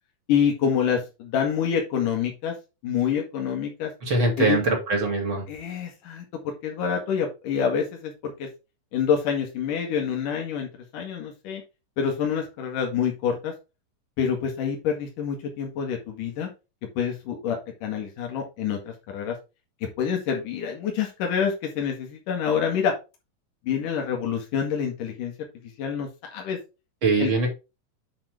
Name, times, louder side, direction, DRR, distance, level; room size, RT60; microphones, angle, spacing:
voice 1, 0.3-2.6 2.8-3.9 4.4-4.6 5.5-8.5 8.9-10.7 10.9-11.6 12.0-13.5 14.2-16.5 17.0-19.4 20.0-23.0 23.7-25.3 25.8-26.6 27.2-27.3, left 7 dB, 80° left, 1 dB, 3.4 m, -27 dB
voice 2, 4.0-5.4 27.0-27.5, right 3 dB, 40° right, 1 dB, 3.2 m, -22 dB
8.8 x 5.7 x 3.5 m, 0.27 s
omnidirectional pair, 3.7 m